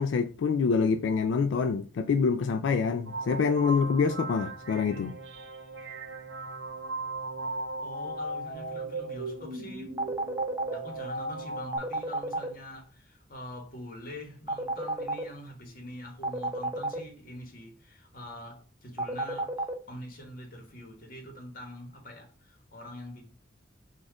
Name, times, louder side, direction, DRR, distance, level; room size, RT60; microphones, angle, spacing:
voice 1, 0.0-5.2, left 5 dB, 80° left, 0.3 m, -26 dB
sound 1, 3.0-11.8, right 2 dB, 80° right, 0.8 m, -37 dB
voice 2, 7.8-9.9 10.7-23.2, left 1 dB, 50° left, 1.3 m, -44 dB
sound 2, 10.0-10.7 11.7-12.5 14.5-15.2 16.2-17.0 19.0-19.7, right 2 dB, 15° right, 0.5 m, -31 dB
4.2 x 2.4 x 4.7 m
head